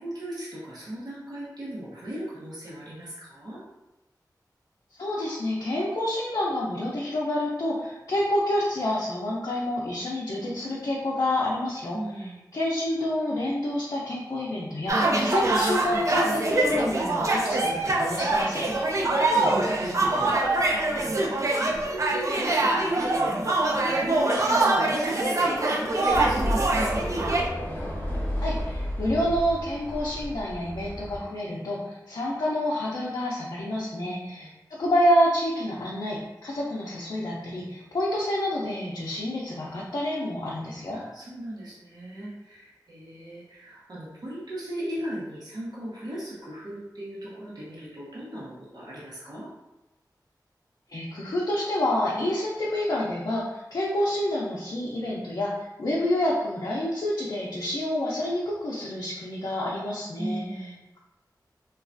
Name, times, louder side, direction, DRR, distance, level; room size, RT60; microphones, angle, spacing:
voice 1, 0.0-3.6 11.9-12.5 18.8-27.2 33.9-34.5 40.9-49.5 60.2-60.8, right 1 dB, 70° right, -8 dB, 0.8 m, -38 dB
voice 2, 5.0-18.6 28.4-41.0 50.9-55.5 55.8-60.4, left 1 dB, 65° left, -6 dB, 0.5 m, -28 dB
sound 1, 14.9-27.5, right 2 dB, 45° right, 0.4 m, -24 dB
sound 2, 26.1-31.2, equal, 30° left, 0.7 m, -32 dB
3.1 x 2.3 x 2.5 m, 0.98 s
wide cardioid pair, 85°, 7 cm